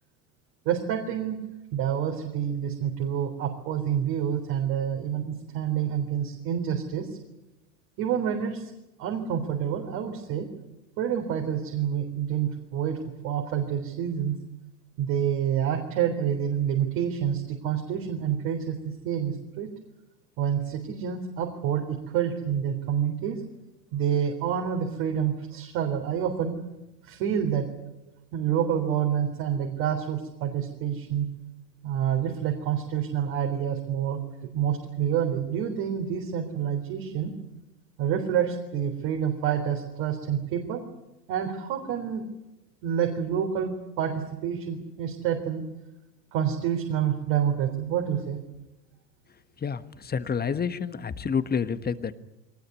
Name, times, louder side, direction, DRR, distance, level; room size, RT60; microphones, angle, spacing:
voice 1, 0.7-1.4 1.7-7.1 8.0-8.7 9.0-10.5 11.0-13.0 13.2-14.3 15.0-19.7 20.4-23.4 23.9-26.6 27.0-27.7 28.3-31.3 31.8-34.2 34.5-37.3 38.0-40.8 41.3-42.2 42.8-45.6 46.3-48.4, right 9 dB, 55° right, 2 dB, 3.9 m, -28 dB
voice 2, 49.6-52.1, left 6 dB, 20° left, 13 dB, 1.4 m, -29 dB
22.5 x 19.5 x 9.7 m, 0.95 s
hypercardioid pair, 85°, 49 cm